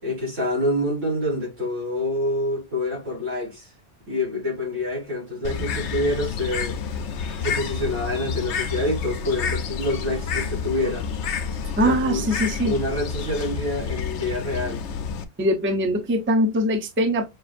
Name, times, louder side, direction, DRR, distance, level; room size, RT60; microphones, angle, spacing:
voice 1, 0.0-3.7 4.1-6.8 7.4-11.1 11.8-12.3 12.6-14.8, left 1 dB, 85° right, 3.6 m, -27 dB
Bird, 5.4-15.2, left 6 dB, 70° left, 0.9 m, -29 dB
voice 2, 11.8-12.7 15.4-17.2, equal, 15° right, 0.5 m, -22 dB
6.1 x 2.5 x 2.5 m
omnidirectional pair, 1.3 m